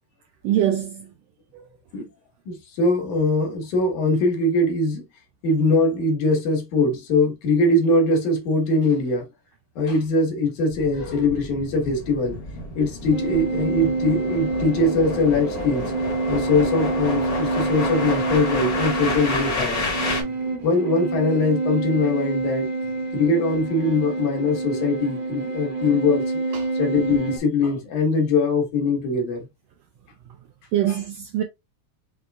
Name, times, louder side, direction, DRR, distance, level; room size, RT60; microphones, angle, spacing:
voice 1, 0.4-1.1 1.5-1.6 26.5-26.6 30.7-31.4, right 11 dB, 85° right, 1.5 m, -23 dB
voice 2, 2.5-5.0 5.4-9.3 9.8-12.4 12.8-15.9 16.3-19.8 20.6-22.7 23.1-26.3 26.7-29.5 30.9-31.0, left 2 dB, 70° left, 2.9 m, -22 dB
sound 1, 10.7-20.2, left 2 dB, 40° left, 1.5 m, -30 dB
sound 2, 13.1-27.4, right 3 dB, 45° right, 0.8 m, -27 dB
5.8 x 3.7 x 2.4 m
omnidirectional pair, 3.6 m